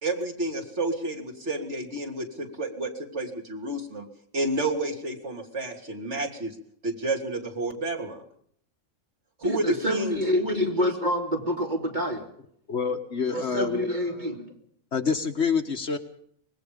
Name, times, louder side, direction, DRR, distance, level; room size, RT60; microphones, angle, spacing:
voice 1, 0.0-4.0 4.3-6.5 6.8-8.2 9.4-10.2, right 2 dB, 55° right, 3 dB, 3.4 m, -30 dB
voice 2, 9.4-12.3 13.3-14.5, equal, 35° right, 2 dB, 3.3 m, -27 dB
voice 3, 12.7-13.9 14.9-16.0, left 5 dB, 55° left, 6 dB, 1.7 m, -27 dB
25.0 x 20.0 x 5.3 m, 0.63 s
omnidirectional pair, 1.4 m